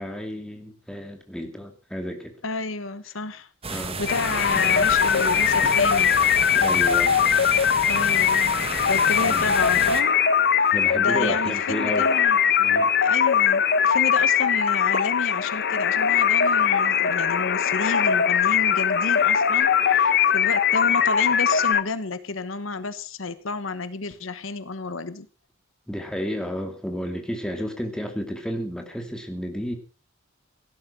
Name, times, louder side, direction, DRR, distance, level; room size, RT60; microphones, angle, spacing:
voice 1, 0.0-2.4 3.7-4.0 5.6-5.8 6.5-7.2 9.2-9.5 10.7-12.1 12.6-12.9 25.9-29.8, equal, 5° left, 4 dB, 2.6 m, -32 dB
voice 2, 2.4-6.1 7.9-8.6 8.8-10.2 11.0-12.5 13.0-25.3, left 3 dB, 70° left, 14 dB, 1.2 m, -31 dB
sound 1, 3.6-10.0, right 4 dB, 30° right, 1.7 m, -32 dB
sound 2, 4.1-21.8, left 8 dB, 55° left, 1.0 m, -21 dB
17.0 x 11.5 x 6.1 m, 0.40 s
head